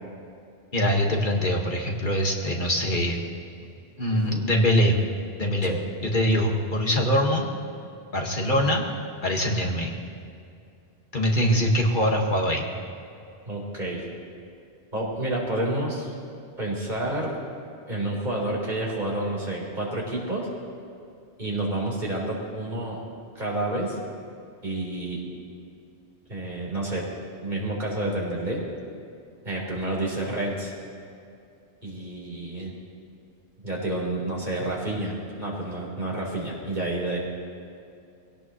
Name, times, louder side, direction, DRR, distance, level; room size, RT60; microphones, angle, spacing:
voice 1, 0.7-3.2 4.0-5.0 5.4-5.8 6.0-7.5 8.1-8.8 9.2-9.9 11.1-12.7, equal, 50° left, 0 dB, 1.8 m, -23 dB
voice 2, 4.1-4.4 5.6-5.8 13.4-14.0 14.9-16.1 16.6-17.4 17.9-20.5 21.4-23.0 23.4-24.0 24.6-25.2 26.3-27.1 27.4-28.6 29.4-30.7 31.8-32.7 33.6-37.2, right 1 dB, 45° right, -4 dB, 3.9 m, -29 dB
22.5 x 17.5 x 3.1 m, 2.5 s
omnidirectional pair, 1.1 m